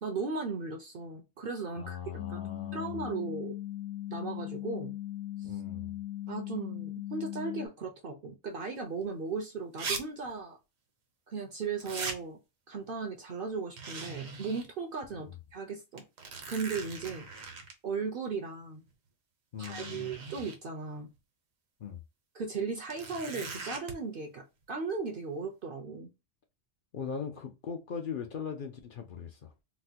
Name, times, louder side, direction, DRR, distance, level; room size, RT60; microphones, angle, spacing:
voice 1, 0.0-2.0 2.3-2.4 2.7-3.5 4.1-5.0 5.4-5.5 6.3-10.6 11.3-12.4 12.7-16.0 16.5-17.3 17.8-18.8 19.6-21.1 22.3-26.1, right 4 dB, 55° right, 0.7 m, -37 dB
voice 2, 1.8-3.0 5.4-6.0 15.1-15.3 19.5-20.1 21.8-22.0 26.9-29.5, left 7 dB, 55° left, 0.6 m, -40 dB
sound 1, 2.2-7.7, left 13 dB, 85° left, 1.1 m, -39 dB
sound 2, 9.0-9.1 9.8-10.0 10.3-10.4 11.8-12.2 13.8-14.7 15.1-15.2 16.0-17.7 18.9-19.0 19.6-20.6 22.9-23.9, right 4 dB, 75° right, 1.3 m, -39 dB
4.1 x 2.1 x 2.7 m
omnidirectional pair, 1.4 m